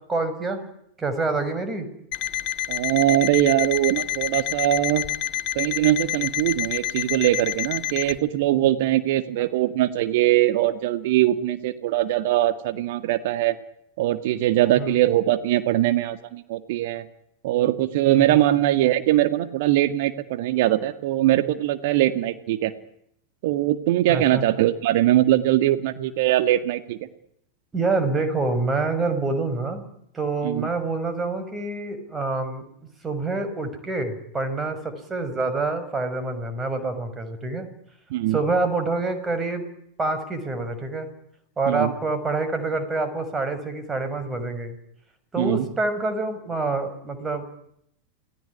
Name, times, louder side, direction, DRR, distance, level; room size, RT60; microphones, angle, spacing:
voice 1, 0.1-0.6 1.0-1.9 14.7-15.0 18.1-18.4 24.1-24.4 27.7-29.8 30.1-32.6 33.0-37.7 38.3-39.6 40.0-41.1 41.6-44.8 45.3-47.4, right 3 dB, 15° right, 9 dB, 6.2 m, -26 dB
Alarm, 2.1-8.2, left 13 dB, 40° left, 1.6 m, -28 dB
voice 2, 2.7-5.0 5.6-13.6 14.0-17.1 17.4-22.7 23.4-27.0 30.4-30.7 38.1-38.4 41.7-41.9 45.4-45.7, right 14 dB, 50° right, 11 dB, 1.8 m, -21 dB
29.0 x 19.5 x 9.9 m, 0.74 s
figure-of-eight pair, 90°, 0 cm